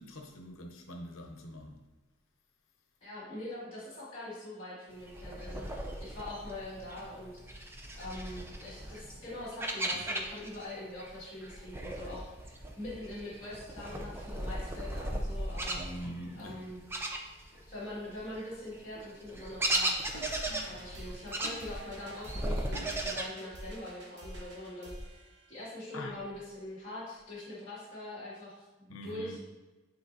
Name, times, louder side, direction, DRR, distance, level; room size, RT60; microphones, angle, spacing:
voice 1, 0.0-1.8 9.9-10.0 15.7-16.6 17.5-17.6 25.9-26.2 28.9-29.4, equal, 85° left, 0.9 m, -44 dB
voice 2, 3.0-7.4 8.0-15.8 16.4-16.8 17.7-19.9 20.6-25.2 25.5-29.4, left 1 dB, 30° left, 2.1 m, -43 dB
sound 1, 5.0-10.7 11.0-17.7 18.1-23.2, right 1 dB, 10° right, 0.4 m, -37 dB
sound 2, 19.9-25.8, right 1 dB, 55° right, 1.2 m, -47 dB
9.3 x 4.3 x 2.7 m
head